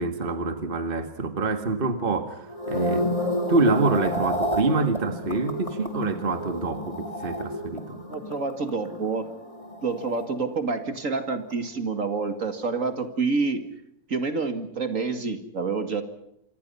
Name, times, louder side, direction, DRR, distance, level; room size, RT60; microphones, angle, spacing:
voice 1, 0.0-3.2 3.5-8.0, right 3 dB, 35° right, 2.0 m, -26 dB
sound 1, 2.5-10.9 11.1-11.5, equal, 20° left, 2.9 m, -31 dB
voice 2, 8.1-9.3 9.8-13.6 14.1-16.0, right 4 dB, 60° right, 2.5 m, -28 dB
28.0 x 24.5 x 5.6 m
omnidirectional pair, 1.6 m